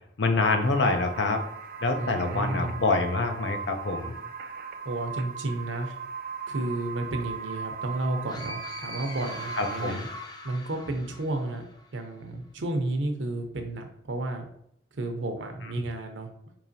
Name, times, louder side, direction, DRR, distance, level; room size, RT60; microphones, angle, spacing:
voice 1, 0.2-1.4 1.8-4.1 9.6-10.1, left 3 dB, 75° left, 5 dB, 0.6 m, -26 dB
sound 1, 0.6-9.9, right 6 dB, 50° right, 0.4 m, -38 dB
voice 2, 2.0-2.8 4.8-5.9 6.5-10.1 10.4-11.6 11.9-14.4 14.9-16.3, right 2 dB, 90° right, 5 dB, 0.6 m, -32 dB
Scream (with echo), 8.3-11.9, left 2 dB, 20° left, 0.3 m, -42 dB
4.7 x 2.9 x 2.7 m, 0.71 s
head